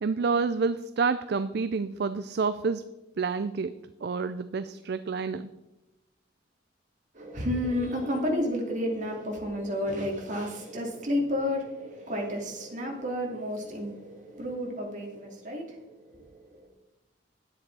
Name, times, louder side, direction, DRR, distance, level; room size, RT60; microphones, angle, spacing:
voice 1, 0.0-2.8 3.2-3.7 4.0-5.5, right 4 dB, 60° right, 12 dB, 0.4 m, -28 dB
voice 2, 7.1-16.7, left 1 dB, 40° right, 0 dB, 2.7 m, -31 dB
11.0 x 9.7 x 4.7 m, 0.98 s
head